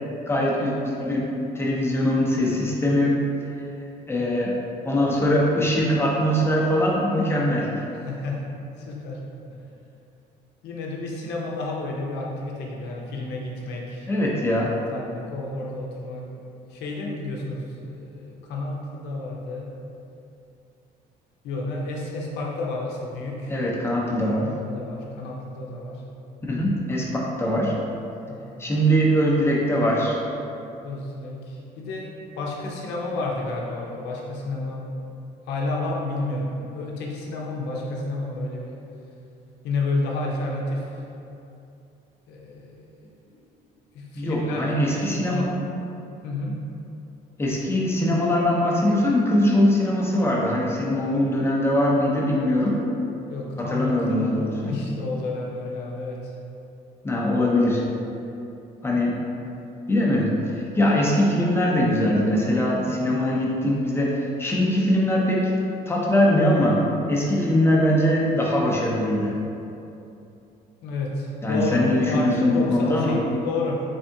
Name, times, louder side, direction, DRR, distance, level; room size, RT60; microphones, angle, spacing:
voice 1, 0.3-3.2 4.1-4.6 4.8-7.8 14.1-14.7 23.5-24.5 26.4-27.8 28.6-30.2 44.1-45.5 47.4-52.8 53.6-54.7 57.0-57.8 58.8-59.2 59.9-65.5 65.9-66.8 67.1-69.4 71.4-73.2, left 1 dB, 15° left, -3 dB, 0.6 m, -22 dB
voice 2, 8.0-8.4 8.8-9.2 10.6-14.1 14.9-16.2 16.7-19.7 21.4-23.5 24.3-26.0 28.3-28.8 30.8-32.1 32.4-34.9 35.5-38.8 39.6-40.9 42.3-42.7 43.3-43.4 43.9-45.5 46.2-46.6 53.3-54.3 54.6-56.3 59.4-59.6 70.8-73.8, left 2 dB, 85° left, -2 dB, 0.7 m, -31 dB
3.4 x 3.4 x 2.7 m, 2.7 s
cardioid pair, 110°, 17 cm